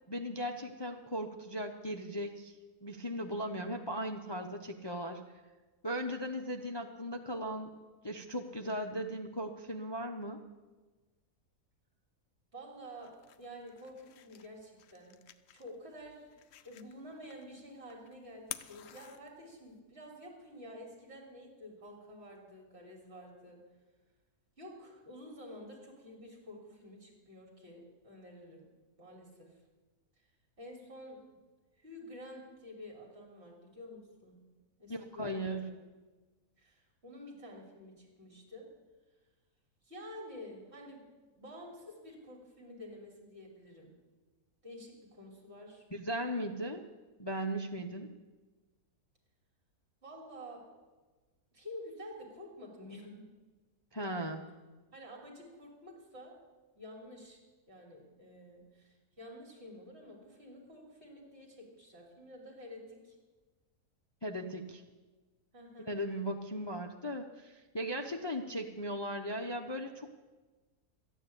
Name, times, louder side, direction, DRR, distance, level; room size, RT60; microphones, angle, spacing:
voice 1, 0.1-2.6 2.8-5.2 5.8-7.7 8.0-10.4 34.9-35.7 45.9-46.9 47.2-48.1 53.9-54.5 64.2-64.8 65.8-70.1, equal, 30° left, 4 dB, 0.5 m, -37 dB
voice 2, 12.5-15.1 15.5-23.6 24.6-28.6 29.0-29.6 30.6-31.2 31.8-34.3 34.8-35.8 36.6-38.7 39.8-41.0 41.4-43.9 44.6-45.8 50.0-50.6 51.5-53.3 54.9-56.4 56.7-57.4 57.7-63.2 65.5-65.9, equal, 45° right, -1 dB, 3.6 m, -50 dB
sound 1, 12.8-19.8, left 10 dB, 65° left, 0.9 m, -52 dB
13.5 x 9.7 x 8.2 m, 1.3 s
omnidirectional pair, 1.6 m